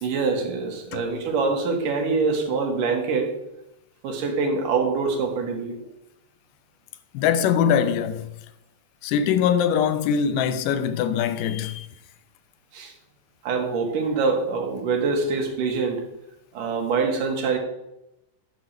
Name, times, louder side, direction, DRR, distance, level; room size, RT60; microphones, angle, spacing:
voice 1, 0.0-3.3 4.0-5.8 12.7-12.9 13.4-16.0 16.5-17.6, right 4 dB, 85° right, 3.1 m, -24 dB
voice 2, 7.1-8.3 9.0-11.9, left 8 dB, 90° left, 2.3 m, -22 dB
10.5 x 6.8 x 4.3 m
omnidirectional pair, 3.7 m